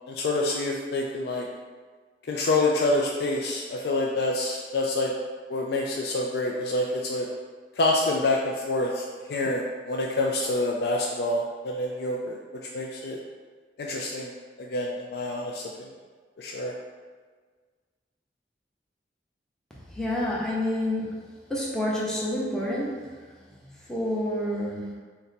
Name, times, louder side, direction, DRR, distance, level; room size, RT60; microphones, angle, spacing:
voice 1, 0.1-1.5 2.3-5.1 5.5-7.3 7.8-12.4 12.7-13.2 13.8-14.3 14.6-15.9 16.4-16.7, left 2 dB, 60° left, -1 dB, 0.3 m, -27 dB
voice 2, 19.7-21.1 21.5-22.9 23.6-24.9, left 1 dB, 5° left, -6 dB, 0.6 m, -28 dB
4.2 x 2.1 x 4.0 m, 1.5 s
head